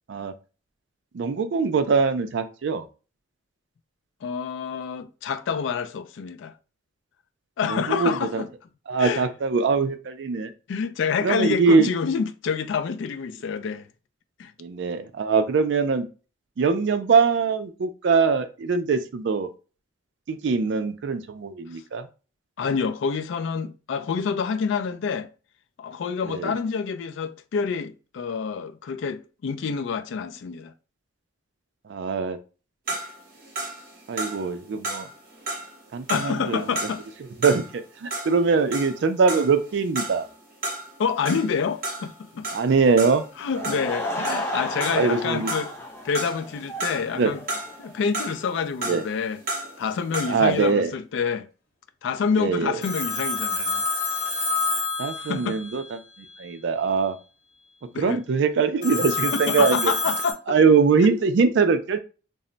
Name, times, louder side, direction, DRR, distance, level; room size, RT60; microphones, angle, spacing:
voice 1, 1.1-2.8 7.7-8.4 8.9-10.5 11.2-11.9 14.6-16.1 16.6-19.5 20.3-22.1 26.3-26.5 31.9-32.4 34.1-35.1 35.9-36.7 37.4-40.3 42.5-43.2 43.6-43.8 44.9-45.5 47.1-47.3 48.9-49.0 50.3-50.9 52.4-52.8 55.0-55.8 56.4-57.2 58.0-59.9 60.5-62.0, right 5 dB, 60° right, 0.3 m, -22 dB
voice 2, 4.2-6.5 7.6-8.5 9.0-9.2 10.7-13.9 14.4-14.5 22.6-25.3 25.8-30.7 36.1-37.0 41.0-42.5 43.4-45.7 46.0-47.4 47.8-49.4 49.8-51.5 52.0-53.9 55.2-55.6 57.9-58.2 59.3-60.4 61.0-61.1, left 6 dB, 70° left, 0.3 m, -27 dB
sound 1, 32.9-37.8 38.1-45.2 45.5-47.2 47.5-50.5, right 2 dB, 45° right, 0.7 m, -33 dB
Laughter / Crowd, 43.4-47.9, left 1 dB, 10° left, 0.5 m, -33 dB
Telephone, 52.8-55.9 58.8-60.3, left 4 dB, 45° left, 0.7 m, -27 dB
2.1 x 2.0 x 3.7 m
head